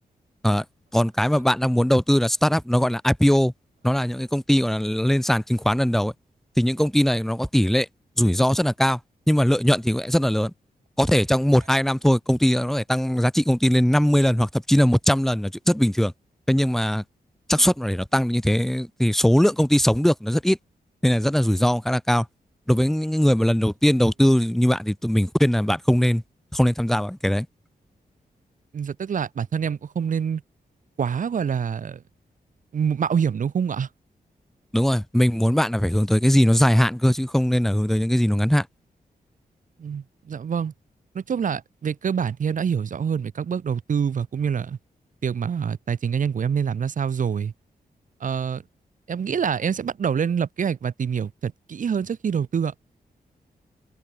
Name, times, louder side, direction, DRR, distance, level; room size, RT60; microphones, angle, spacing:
voice 1, 0.9-3.5 3.8-6.1 6.6-7.9 8.2-9.0 9.3-10.5 11.0-16.1 16.5-17.0 17.5-20.6 21.0-22.3 22.7-26.2 26.5-27.5 34.7-38.7, equal, ahead, 1.2 m, -20 dB
voice 2, 28.7-30.4 31.0-32.0 32.7-33.9 39.8-40.7 41.1-44.8 45.2-47.5 48.2-48.6 49.1-52.7, right 7 dB, 55° right, 1.0 m, -26 dB
wide cardioid pair, 170°, 16 cm